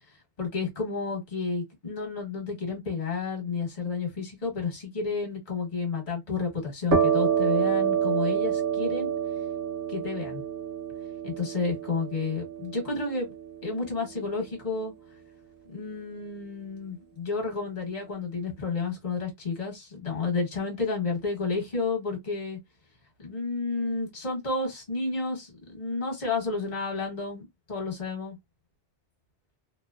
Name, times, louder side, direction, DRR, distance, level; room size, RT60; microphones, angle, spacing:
voice 1, 0.4-9.1 9.9-10.4 11.2-13.3 13.6-14.9 15.7-22.6 23.2-28.4, left 4 dB, 40° left, 1.2 m, -31 dB
sound 1, 6.9-14.4, right 8 dB, 60° right, 1.0 m, -28 dB
2.7 x 2.1 x 2.3 m
omnidirectional pair, 1.2 m